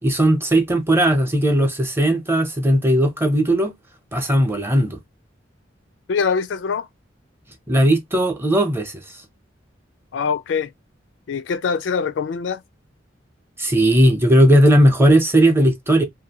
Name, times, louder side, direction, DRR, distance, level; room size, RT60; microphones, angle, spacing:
voice 1, 0.0-3.7 4.1-5.0 7.7-8.9 13.6-16.0, right 1 dB, 15° right, 0.7 m, -17 dB
voice 2, 6.1-6.9 10.1-10.7 11.3-12.6, left 5 dB, 70° left, 0.4 m, -23 dB
2.6 x 2.5 x 2.8 m
head